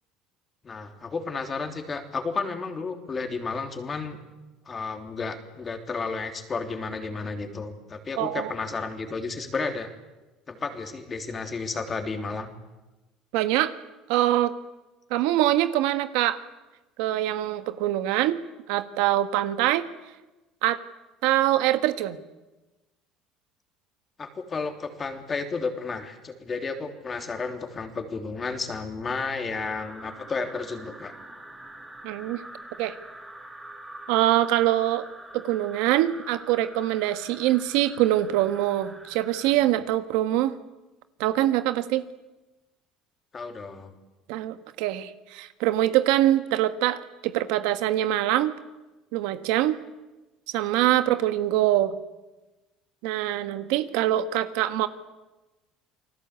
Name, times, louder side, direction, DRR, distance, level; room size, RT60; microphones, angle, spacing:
voice 1, 0.6-4.2 4.6-9.9 10.5-12.5 24.2-31.1 43.3-43.9, left 4 dB, 25° left, 5 dB, 3.2 m, -32 dB
voice 2, 8.2-8.5 13.3-13.7 14.1-14.5 15.1-16.4 17.0-18.4 18.7-19.9 20.6-20.8 21.2-22.2 32.0-32.4 32.8-32.9 34.1-35.0 35.3-40.6 41.2-42.0 44.3-48.5 49.1-49.8 50.5-51.9 53.0-54.9, right 14 dB, 85° right, 10 dB, 1.5 m, -24 dB
sound 1, 29.6-39.5, right 1 dB, 10° right, 3.7 m, -45 dB
29.0 x 20.0 x 8.4 m, 1.1 s
cardioid pair, 130°, 0 cm